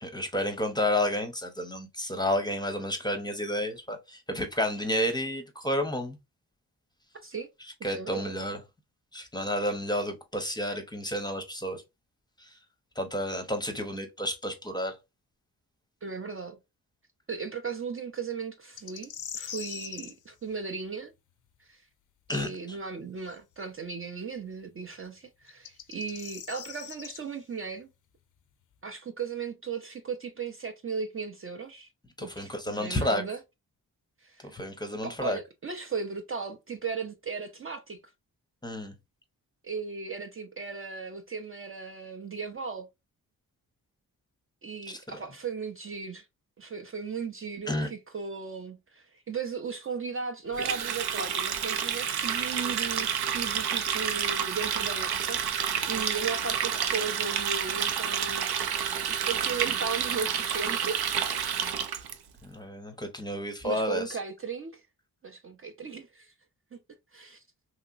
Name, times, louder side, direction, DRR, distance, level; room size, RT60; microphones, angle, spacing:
voice 1, 0.0-6.2 7.8-8.6 9.1-11.8 13.0-14.9 22.3-22.5 32.2-33.2 34.5-35.4 38.6-38.9 44.9-45.0 47.7-47.9 62.5-64.0, left 1 dB, 10° left, 0.6 m, -31 dB
voice 2, 7.8-8.3 16.0-16.6 17.3-21.1 21.6-21.8 22.3-27.9 28.8-31.9 32.2-33.4 34.2-34.5 35.0-38.0 39.6-42.9 44.6-46.3 46.6-58.6 59.3-61.0 63.6-64.8 65.2-66.3 66.7-66.8 67.1-67.4, right 5 dB, 35° right, 0.5 m, -36 dB
sound 1, 18.8-20.1 23.3-23.4 25.5-27.2, left 9 dB, 55° left, 0.4 m, -41 dB
Water tap faucet, 50.5-62.1, right 8 dB, 90° right, 0.6 m, -29 dB
3.0 x 2.8 x 2.4 m
cardioid pair, 95°, 37 cm